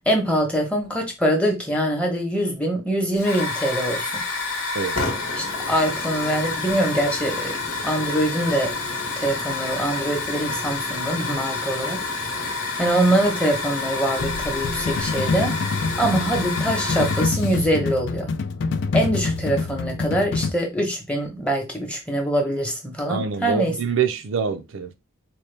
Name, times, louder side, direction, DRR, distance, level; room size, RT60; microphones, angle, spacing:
voice 1, 0.1-4.1 5.3-7.5 7.8-8.8 9.2-15.5 16.0-18.3 18.9-23.7, right 1 dB, 5° left, 0.9 m, -24 dB
Hiss / Fire, 3.2-17.6, left 3 dB, 85° left, 1.1 m, -28 dB
sound 1, 14.2-20.5, left 4 dB, 55° left, 0.4 m, -26 dB
voice 2, 23.1-24.9, right 6 dB, 65° right, 0.5 m, -25 dB
4.3 x 2.2 x 3.3 m
head